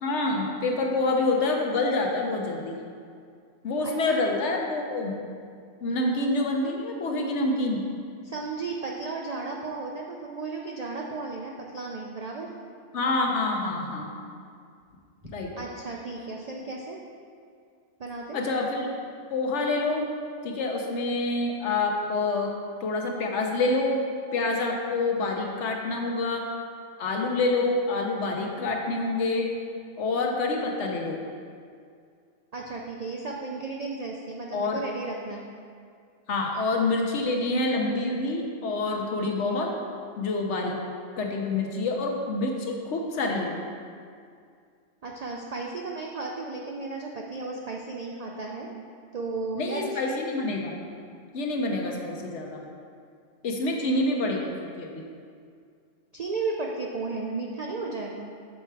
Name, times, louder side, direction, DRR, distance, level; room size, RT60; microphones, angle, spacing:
voice 1, 0.0-2.8 3.6-5.2 5.8-7.8 12.9-14.2 15.3-15.5 18.3-18.9 19.3-20.0 20.4-22.5 22.8-24.0 24.3-26.5 27.0-29.5 30.0-31.2 34.5-34.8 36.3-39.7 40.2-40.8 41.2-43.6 49.5-50.7 51.3-52.6 53.4-54.5 54.8-55.0, left 2 dB, 65° left, 1 dB, 1.1 m, -27 dB
voice 2, 3.8-4.4 8.2-12.5 15.6-17.0 18.0-18.4 32.5-35.5 45.0-48.7 49.1-50.3 56.1-58.3, right 3 dB, 70° right, -1 dB, 0.3 m, -34 dB
6.7 x 4.4 x 4.6 m, 2.2 s
omnidirectional pair, 1.3 m